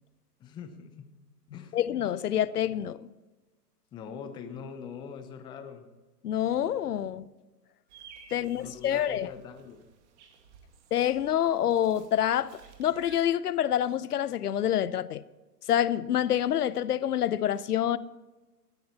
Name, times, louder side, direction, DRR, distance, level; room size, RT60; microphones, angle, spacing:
voice 1, 0.4-1.1 1.5-1.8 3.9-5.9 8.4-9.8, left 6 dB, 10° left, 0.6 m, -43 dB
voice 2, 1.7-3.0 6.2-7.2 8.3-9.3 10.9-12.5 12.8-15.2 15.7-18.0, left 10 dB, 65° left, 0.7 m, -27 dB
sound 1, 7.9-13.2, right 7 dB, 45° right, 2.3 m, -55 dB
18.0 x 13.0 x 4.3 m
figure-of-eight pair, 120°, 49 cm